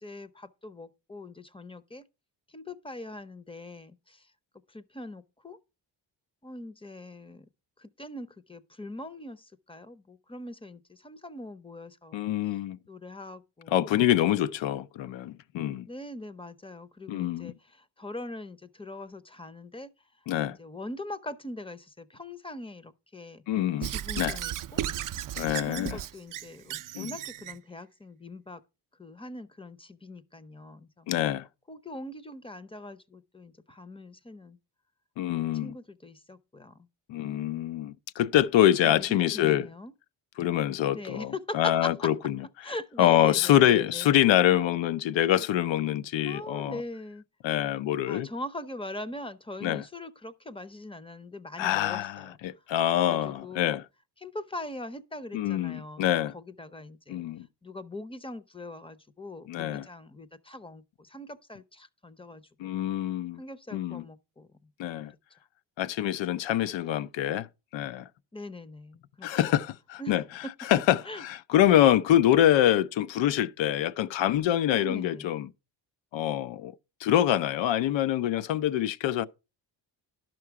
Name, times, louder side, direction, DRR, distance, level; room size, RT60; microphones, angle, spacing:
voice 1, 0.0-2.0 2.5-4.2 4.7-5.6 6.4-7.5 7.8-12.2 12.9-13.9 15.9-19.9 20.4-23.4 23.8-24.8 25.6-28.6 29.0-31.1 31.7-34.6 35.6-36.9 38.8-39.9 40.9-42.1 42.6-44.1 46.3-47.2 48.1-52.4 52.9-53.8 54.2-57.2 57.6-62.7 63.4-64.5 68.3-69.3 70.0-70.1 71.1-71.2 74.7-75.3, left 1 dB, 10° left, 0.6 m, -42 dB
voice 2, 12.1-12.8 13.7-15.9 17.1-17.5 20.3-20.6 23.5-23.9 24.2-24.4 25.4-26.0 26.9-27.2 31.1-31.5 35.2-35.7 37.1-39.7 40.4-46.8 47.4-48.3 49.6-49.8 51.6-53.9 55.3-56.3 57.1-57.5 59.5-59.9 62.6-63.4 63.7-64.1 64.8-65.1 65.8-67.5 67.7-68.1 69.2-75.5 76.1-76.7 77.0-79.3, left 12 dB, 75° left, 0.7 m, -25 dB
Squeak / Writing, 23.8-27.6, right 12 dB, 50° right, 0.4 m, -35 dB
11.5 x 6.1 x 4.7 m
cardioid pair, 90°, 45 cm